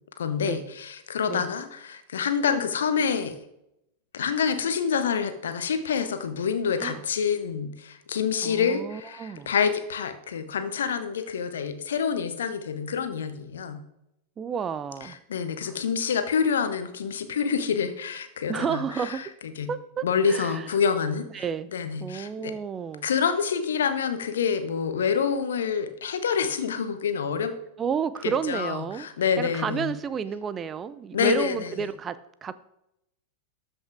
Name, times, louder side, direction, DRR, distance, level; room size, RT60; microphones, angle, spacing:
voice 1, 0.2-3.4 4.1-13.8 15.0-19.3 19.6-19.7 20.0-21.4 21.7-22.5 23.0-27.5 28.2-29.9 31.1-31.5, left 6 dB, 65° left, 10 dB, 0.9 m, -27 dB
voice 2, 8.4-9.5 14.4-15.2 15.7-15.8 18.5-19.2 19.7-20.7 21.3-21.7 22.0-23.1 27.8-29.1 29.4-32.5, right 7 dB, 25° right, 15 dB, 0.4 m, -31 dB
13.0 x 5.5 x 3.5 m, 0.83 s
figure-of-eight pair, 90°, 0 cm